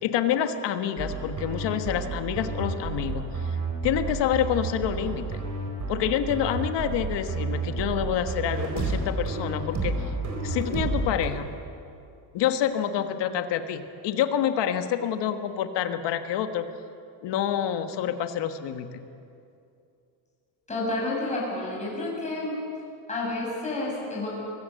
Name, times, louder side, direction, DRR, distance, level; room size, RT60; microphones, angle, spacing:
voice 1, 0.0-3.5 3.8-5.3 5.9-10.1 10.4-11.5 12.3-16.7 17.2-19.0, left 9 dB, 55° left, 8 dB, 1.5 m, -27 dB
sound 1, 1.0-11.3, right 3 dB, 40° right, 4.2 m, -30 dB
voice 2, 20.7-22.5 23.1-24.3, left 2 dB, 15° left, -5 dB, 7.0 m, -30 dB
23.5 x 15.0 x 7.9 m, 2.5 s
cardioid pair, 145°, 49 cm